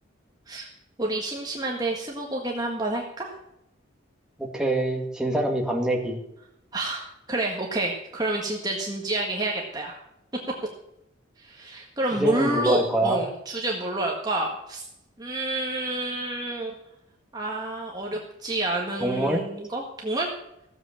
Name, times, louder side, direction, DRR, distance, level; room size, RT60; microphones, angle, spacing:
voice 1, 1.0-3.3 6.7-10.0 11.4-14.8 15.2-16.7 17.3-20.3, right 2 dB, 20° right, -1 dB, 1.7 m, -29 dB
voice 2, 4.4-6.2 12.2-13.2 19.0-19.4, right 1 dB, 5° right, -1 dB, 2.1 m, -25 dB
15.5 x 8.0 x 7.4 m, 0.81 s
head